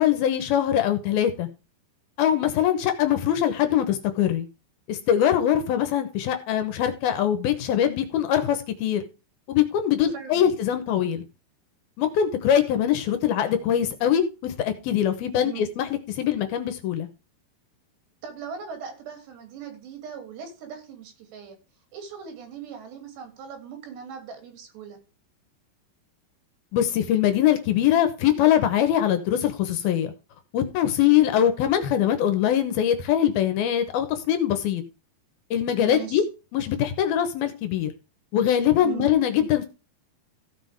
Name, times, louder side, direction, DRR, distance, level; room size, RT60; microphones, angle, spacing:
voice 1, 0.0-1.5 2.2-4.5 4.9-9.0 9.5-11.2 12.0-15.8 16.2-17.1 26.7-30.1 30.5-34.8 35.5-36.2 36.5-37.9 38.3-39.7, left 10 dB, 75° left, 9 dB, 2.7 m, -22 dB
voice 2, 10.1-10.5 15.3-15.6 18.2-21.6 21.9-25.0 35.8-36.3 38.8-39.1, right 7 dB, 80° right, 5 dB, 4.8 m, -39 dB
15.5 x 6.1 x 3.5 m, 0.32 s
omnidirectional pair, 4.8 m